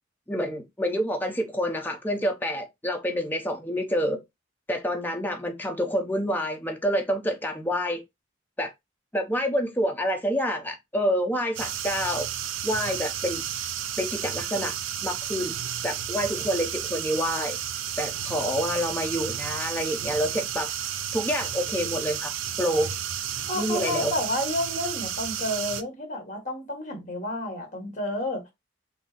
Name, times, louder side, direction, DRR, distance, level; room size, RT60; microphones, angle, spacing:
voice 1, 0.3-4.2 4.7-8.0 8.6-8.7 9.1-12.3 12.6-13.4 14.0-14.8 15.0-15.5 15.8-17.6 18.0-20.7 21.1-22.9 23.5-24.1, equal, 10° left, 0.8 m, -28 dB
sound 1, 11.5-25.8, right 10 dB, 85° right, 0.5 m, -32 dB
voice 2, 23.5-28.4, left 1 dB, 40° left, 1.5 m, -30 dB
5.9 x 2.0 x 4.0 m
head